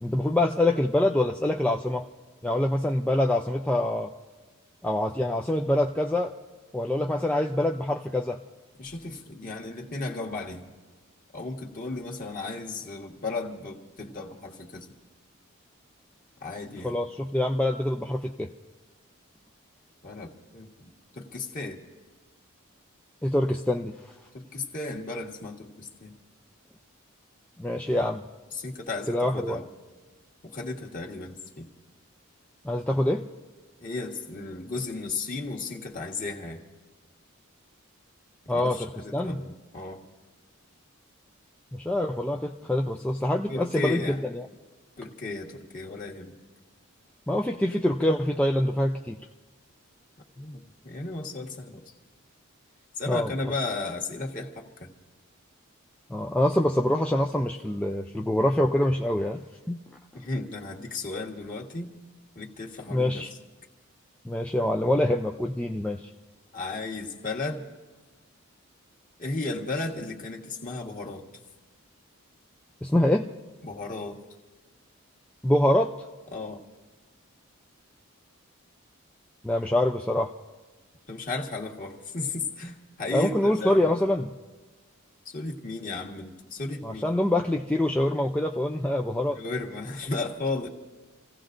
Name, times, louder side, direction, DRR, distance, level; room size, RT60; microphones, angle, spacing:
voice 1, 0.0-2.0 2.4-4.1 4.8-6.3 6.7-8.4 16.8-18.5 23.2-23.9 27.6-28.2 29.1-29.6 32.6-33.2 38.5-39.4 41.8-44.5 47.3-49.2 53.1-53.3 56.1-59.4 59.7-59.8 62.9-63.3 64.3-66.0 72.8-73.3 75.4-75.9 79.4-80.3 83.1-84.2 86.8-89.4, left 1 dB, 5° left, 1 dB, 0.4 m, -25 dB
voice 2, 8.8-10.7 11.3-14.9 16.4-16.9 20.0-21.8 24.3-26.1 28.5-29.7 30.4-31.7 33.8-36.6 38.4-40.0 43.5-44.2 45.0-46.4 50.3-51.9 53.0-54.9 60.1-62.0 62.3-63.3 66.5-67.7 69.2-71.2 73.6-74.2 76.3-76.6 81.1-84.0 85.2-87.1 89.3-90.7, left 3 dB, 40° left, 0 dB, 1.5 m, -35 dB
29.0 x 16.0 x 2.6 m, 1.3 s
head